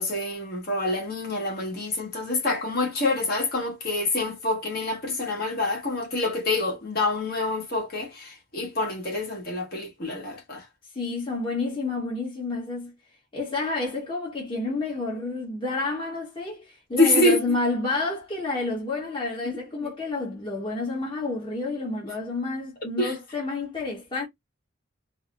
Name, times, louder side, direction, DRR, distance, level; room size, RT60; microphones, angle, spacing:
voice 1, 0.0-10.7 17.0-17.6 19.4-19.9 23.0-23.1, left 2 dB, 50° left, 1.3 m, -26 dB
voice 2, 10.9-12.9 13.3-24.3, left 3 dB, 25° left, 1.1 m, -29 dB
4.1 x 2.0 x 2.4 m
head